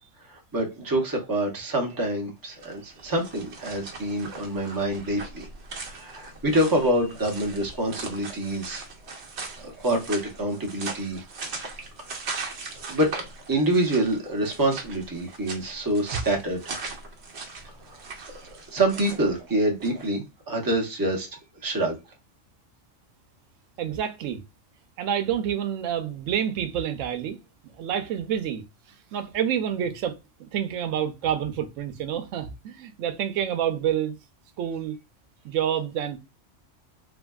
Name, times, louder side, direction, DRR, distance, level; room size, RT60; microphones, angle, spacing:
voice 1, 0.2-5.5 5.8-8.8 9.6-11.2 12.9-13.1 13.5-16.6 17.8-18.0 18.5-21.3 21.6-22.0, right 1 dB, 20° right, 0.7 m, -26 dB
sound 1, 2.5-20.1, right 4 dB, 65° right, 1.0 m, -39 dB
voice 2, 23.8-24.4 25.0-27.4 27.8-28.6 29.1-34.1 34.6-35.0 35.4-36.2, right 9 dB, 90° right, 0.9 m, -28 dB
3.5 x 2.2 x 2.2 m
omnidirectional pair, 1.3 m